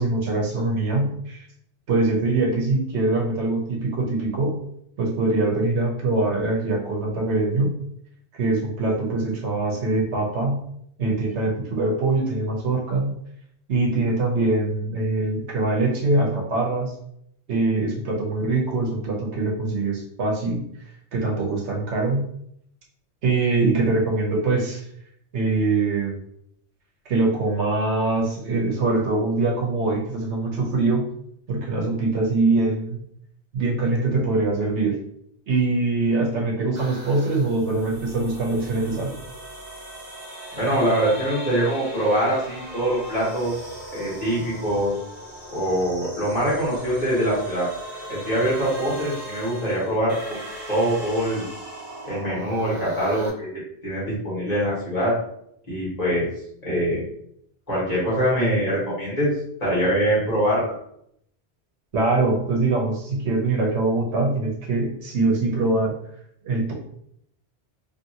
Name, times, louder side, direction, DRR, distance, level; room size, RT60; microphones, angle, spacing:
voice 1, 0.0-1.4 1.9-4.6 5.0-7.8 8.3-10.6 11.0-13.2 13.7-16.9 17.5-20.7 21.1-22.3 23.2-24.8 25.3-26.2 27.1-31.1 31.5-33.0 33.5-35.0 35.5-39.1 61.9-65.9 66.4-66.7, right 3 dB, 75° right, -1 dB, 1.1 m, -23 dB
sound 1, 36.7-53.3, right 1 dB, 40° right, 0.7 m, -38 dB
voice 2, 40.5-43.5 43.9-44.9 45.5-47.7 48.1-50.1 50.7-51.4 52.0-53.5 53.8-55.1 55.7-56.3 56.6-57.0 57.7-59.3 59.6-60.7, equal, 35° left, -8 dB, 1.5 m, -23 dB
2.9 x 2.7 x 2.8 m, 0.71 s
omnidirectional pair, 1.2 m